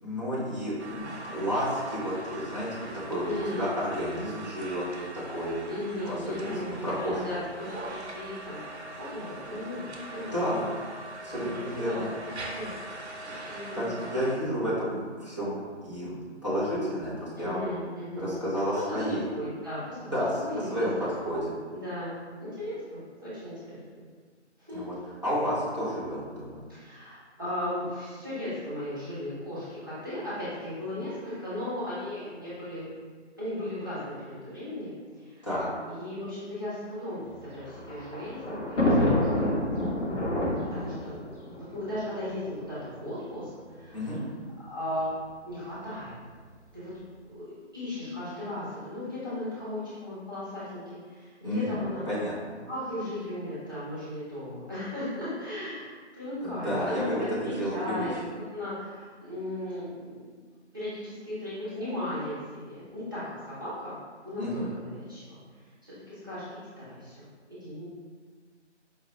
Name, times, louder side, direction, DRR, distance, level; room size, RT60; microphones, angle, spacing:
voice 1, 0.0-4.8 5.1-5.5 6.0-7.2 10.3-10.6 11.2-12.1 13.7-16.2 16.4-17.6 18.2-19.2 20.1-20.3 20.7-21.6 24.7-24.9 25.2-26.6 35.4-35.7 43.9-44.2 51.4-52.6 56.4-58.1 64.4-64.7, equal, 25° left, -11 dB, 0.7 m, -31 dB
sound 1, 0.8-14.4, right 2 dB, 65° right, 0.7 m, -42 dB
voice 2, 3.2-3.7 5.6-7.4 7.8-10.6 11.3-11.5 11.7-12.0 12.5-12.7 13.5-14.1 17.4-18.4 18.9-20.9 21.7-23.8 24.6-25.0 26.7-32.9 33.4-34.9 35.2-35.5 35.9-39.6 40.3-44.3 44.6-45.1 45.5-46.1 46.7-46.9 47.2-52.3 52.7-60.3 60.7-64.0 64.2-65.4 65.8-66.4 66.8-67.8, left 1 dB, 20° right, -12 dB, 0.8 m, -36 dB
Thunder, 37.3-42.6 43.5-43.6 43.8-43.9 45.0-45.3, left 1 dB, 75° left, 1.2 m, -28 dB
4.9 x 2.1 x 3.0 m, 1.5 s
figure-of-eight pair, 160°, 36 cm